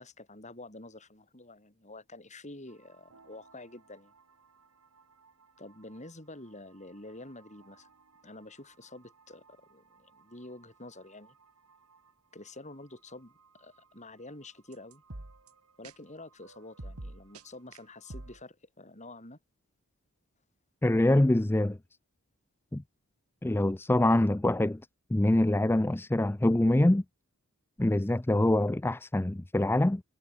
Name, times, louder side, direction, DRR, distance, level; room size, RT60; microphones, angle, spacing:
voice 1, 0.0-4.1 5.6-7.9 8.2-11.3 12.3-15.0 15.8-19.4, left 2 dB, 30° left, 6.4 m, -48 dB
sound 1, 2.7-18.4, right 2 dB, 75° right, 2.2 m, -53 dB
voice 2, 20.8-21.8 22.7-22.8 23.4-24.8 25.1-27.0 27.8-30.0, left 1 dB, 10° left, 0.4 m, -25 dB
head